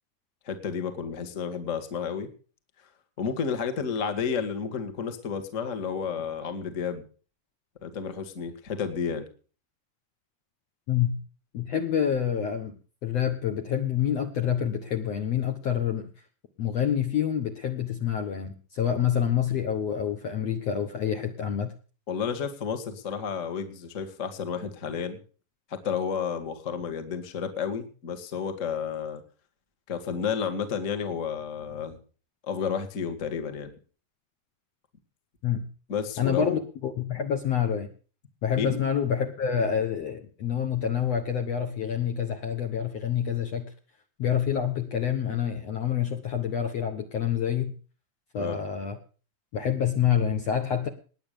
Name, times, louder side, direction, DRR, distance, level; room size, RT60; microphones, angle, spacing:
voice 1, 0.4-2.3 3.2-7.0 7.8-9.3 22.1-25.2 25.7-29.2 29.9-32.0 32.5-33.7 35.9-36.6 38.6-38.8 48.4-48.6, left 6 dB, 30° left, 8 dB, 1.4 m, -31 dB
voice 2, 10.9-11.2 11.5-12.7 13.0-16.1 16.6-21.7 35.4-35.7 36.2-37.9 38.4-43.7 44.2-47.7 48.3-49.0 49.5-50.9, left 8 dB, 60° left, 4 dB, 1.9 m, -27 dB
20.0 x 8.6 x 6.7 m, 0.40 s
omnidirectional pair, 4.3 m